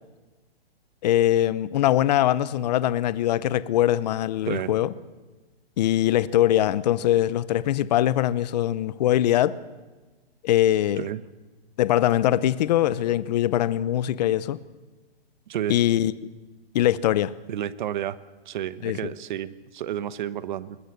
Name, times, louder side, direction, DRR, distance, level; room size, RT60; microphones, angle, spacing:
voice 1, 1.0-4.9 5.8-9.6 10.4-11.1 11.8-14.6 15.7-16.1 16.7-17.3 18.8-19.1, left 12 dB, 40° left, 0.8 m, -22 dB
voice 2, 4.4-4.8 11.0-11.2 15.5-15.8 17.5-18.2 18.4-20.8, right 11 dB, 50° right, 1.1 m, -31 dB
21.0 x 20.5 x 6.7 m
hypercardioid pair, 150°, 31 cm